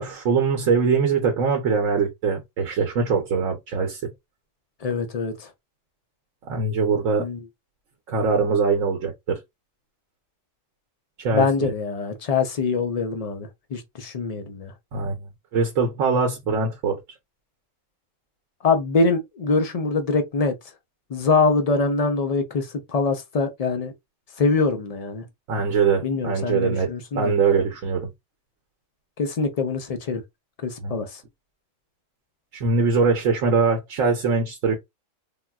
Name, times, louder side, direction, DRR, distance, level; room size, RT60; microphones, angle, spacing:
voice 1, 0.0-4.1 6.5-7.3 8.1-9.4 11.2-11.7 14.9-15.2 15.5-17.0 25.5-26.9 27.1-28.1 30.8-31.0 32.5-34.8, right 5 dB, 80° right, 1.0 m, -22 dB
voice 2, 4.8-5.5 7.2-7.4 11.3-14.7 18.6-20.5 21.1-23.9 24.4-25.3 26.0-27.3 29.2-30.2 30.6-31.2, left 4 dB, 80° left, 0.3 m, -24 dB
3.6 x 2.2 x 2.2 m
omnidirectional pair, 1.3 m